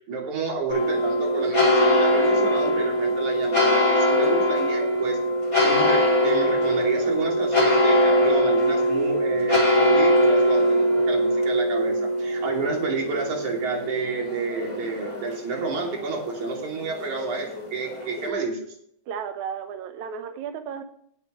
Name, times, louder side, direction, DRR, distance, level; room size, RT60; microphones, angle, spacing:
voice 1, 0.0-5.2 5.6-18.7, right 4 dB, 55° right, 0 dB, 4.1 m, -30 dB
sound 1, 0.7-18.3, equal, 25° left, 3.3 m, -22 dB
voice 2, 19.1-20.8, right 7 dB, 70° right, 6 dB, 1.9 m, -34 dB
19.5 x 8.0 x 3.1 m, 0.66 s
omnidirectional pair, 4.3 m